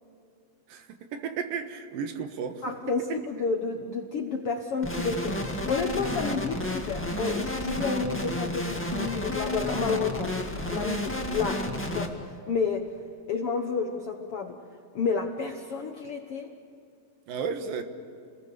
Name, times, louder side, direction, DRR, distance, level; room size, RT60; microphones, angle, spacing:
voice 1, 1.1-2.6 17.3-17.8, right 6 dB, 70° right, 7 dB, 3.1 m, -33 dB
voice 2, 2.6-10.3 10.7-12.9 13.3-14.6 14.9-16.5, left 5 dB, 70° left, 3 dB, 1.4 m, -30 dB
sound 1, 4.8-12.1, left 1 dB, 15° left, 0.4 m, -31 dB
29.5 x 20.5 x 6.8 m, 2.5 s
omnidirectional pair, 4.2 m